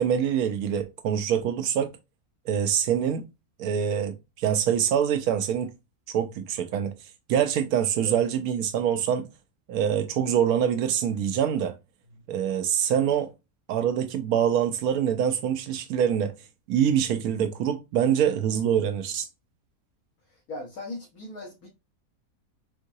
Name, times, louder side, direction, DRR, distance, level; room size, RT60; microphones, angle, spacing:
voice 1, 0.0-1.9 2.5-3.2 3.6-5.7 6.1-6.9 7.3-9.3 9.7-11.7 12.3-13.3 13.7-16.3 16.7-19.3, right 9 dB, 90° right, 1.1 m, -25 dB
voice 2, 20.3-21.7, left 2 dB, 90° left, 1.7 m, -39 dB
4.6 x 3.7 x 2.6 m
omnidirectional pair, 1.5 m